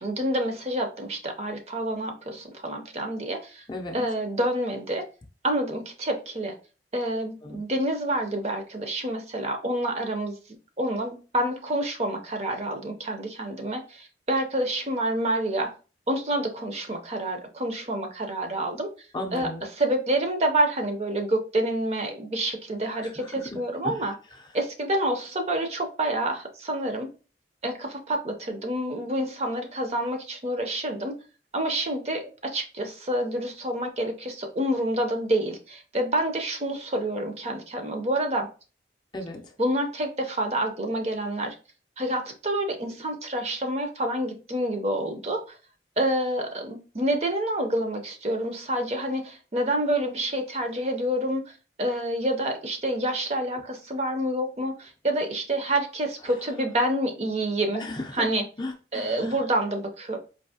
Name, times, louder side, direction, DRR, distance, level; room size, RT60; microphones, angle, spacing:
voice 1, 0.0-3.6 3.9-5.1 5.4-6.5 6.9-10.4 10.8-15.7 16.1-18.9 19.3-19.5 19.8-24.1 24.5-27.1 27.6-31.1 31.5-38.5 39.6-41.5 42.0-45.6 46.0-51.4 51.8-57.8 58.1-58.4 58.9-60.2, right 1 dB, 35° right, 4 dB, 0.6 m, -28 dB
voice 2, 3.7-4.1 7.4-7.6 19.1-19.6 22.9-23.6 23.8-24.0 39.1-39.5 57.7-58.3 58.6-59.4, left 1 dB, 25° left, 2 dB, 0.5 m, -35 dB
4.6 x 2.7 x 2.7 m, 0.35 s
head